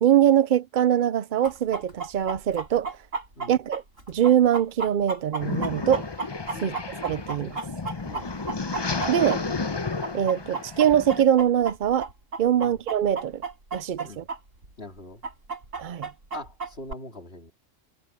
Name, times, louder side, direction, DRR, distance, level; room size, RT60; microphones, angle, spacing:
voice 1, 0.0-3.0 3.5-3.8 4.1-6.1 6.6-6.7 7.0-7.6 9.1-9.4 10.1-12.1 12.4-13.4 13.7-14.2 15.8-16.1, right 10 dB, 55° right, 0.5 m, -22 dB
Chicken rooster, 1.4-9.7 10.0-14.4 14.6-14.7 15.2-16.9, right 4 dB, 90° right, 6.7 m, -33 dB
sound 1, 5.4-11.2, left 3 dB, 25° left, 0.7 m, -32 dB
voice 2, 14.8-15.2 16.3-17.5, left 1 dB, 50° left, 3.8 m, -41 dB
omnidirectional pair, 1.3 m